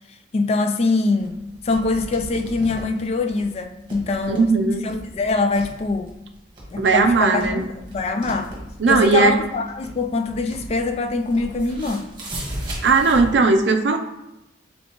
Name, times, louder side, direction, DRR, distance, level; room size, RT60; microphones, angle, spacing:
voice 1, 0.3-1.3 1.6-4.5 4.8-6.1 6.7-7.6 7.9-8.5 8.9-12.1, left 3 dB, 35° left, 6 dB, 0.3 m, -23 dB
sound 1, 1.2-13.4, right 1 dB, 30° right, 1.3 m, -37 dB
voice 2, 4.3-4.9 6.8-7.6 8.8-9.4 12.8-14.0, right 4 dB, 75° right, 6 dB, 0.5 m, -17 dB
5.3 x 3.3 x 2.9 m, 0.90 s
head